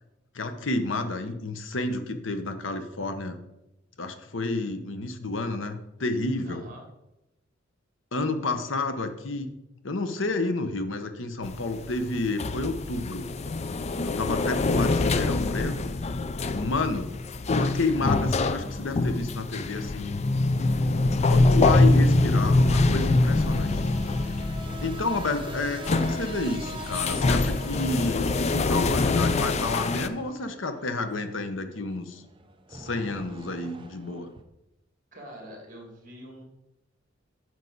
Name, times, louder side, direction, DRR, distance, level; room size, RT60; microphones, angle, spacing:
voice 1, 0.3-3.4 4.0-6.7 8.1-9.5 9.8-13.3 14.0-15.8 16.5-17.1 17.5-20.1 21.3-23.8 24.8-32.2 32.7-34.3, left 3 dB, 75° left, 8 dB, 1.0 m, -30 dB
voice 2, 6.4-6.8 35.1-36.4, equal, 45° right, 0 dB, 2.6 m, -44 dB
sound 1, 11.4-30.1, left 2 dB, 35° left, 0.4 m, -25 dB
sound 2, 15.4-34.4, right 1 dB, 25° right, 0.7 m, -46 dB
9.5 x 6.4 x 4.0 m, 0.91 s
head